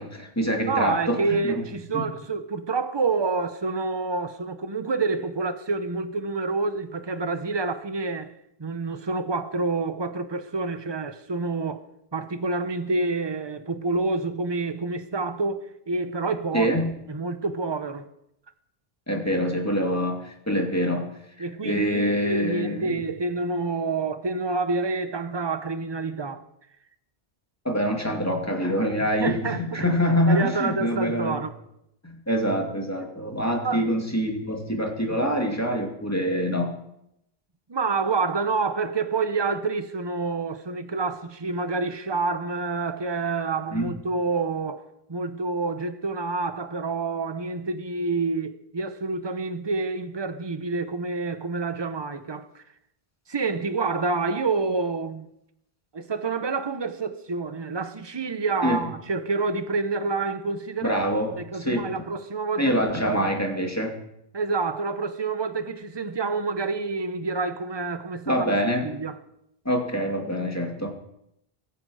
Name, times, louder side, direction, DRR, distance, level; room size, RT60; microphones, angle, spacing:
voice 1, 0.0-1.6 1.9-2.1 16.5-16.9 19.1-21.1 21.6-23.0 27.6-31.4 32.0-36.8 43.7-43.9 58.6-58.8 60.8-62.0 62.6-64.0 68.3-68.9 69.6-70.9, equal, 15° left, 2.3 m, -25 dB
voice 2, 0.7-8.3 8.6-11.8 12.1-16.7 17.1-18.1 21.4-26.4 29.0-29.9 30.3-31.6 33.6-33.8 37.7-44.8 45.1-52.6 53.3-55.3 55.9-61.0 61.4-63.3 64.3-68.6 68.8-69.2, right 3 dB, 25° right, 0.9 m, -28 dB
23.0 x 9.4 x 4.9 m
omnidirectional pair, 1.0 m